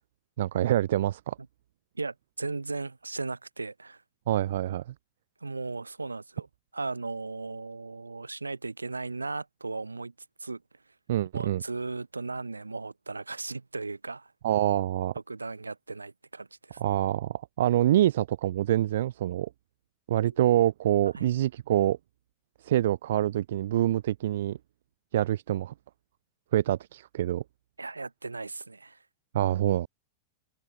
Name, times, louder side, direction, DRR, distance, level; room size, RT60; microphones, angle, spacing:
voice 1, 0.4-1.4 4.3-4.8 11.1-11.6 14.4-15.1 16.8-19.5 20.1-22.0 22.6-24.6 25.1-25.7 26.5-27.4 29.3-29.9, right 13 dB, 60° right, 0.8 m, -26 dB
voice 2, 1.9-4.0 5.4-6.5 6.7-10.1 10.4-10.6 11.3-14.3 15.3-16.8 21.2-21.3 27.8-29.0, right 3 dB, 80° right, 4.2 m, -36 dB
figure-of-eight pair, 90°, 0 cm